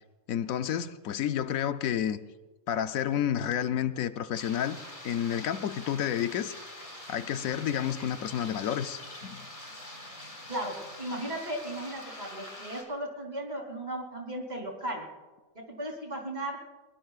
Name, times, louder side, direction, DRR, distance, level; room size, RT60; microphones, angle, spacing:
voice 1, 0.3-2.2 2.7-4.8 5.0-6.5 7.1-9.5, left 10 dB, 85° left, 1.1 m, -30 dB
sound 1, 4.3-12.8, left 1 dB, 25° left, 2.6 m, -45 dB
sound 2, 6.7-12.1, left 2 dB, 65° left, 3.0 m, -55 dB
voice 2, 10.5-15.1 15.5-16.6, right 1 dB, 30° right, 3.3 m, -36 dB
22.0 x 21.5 x 2.4 m
omnidirectional pair, 1.4 m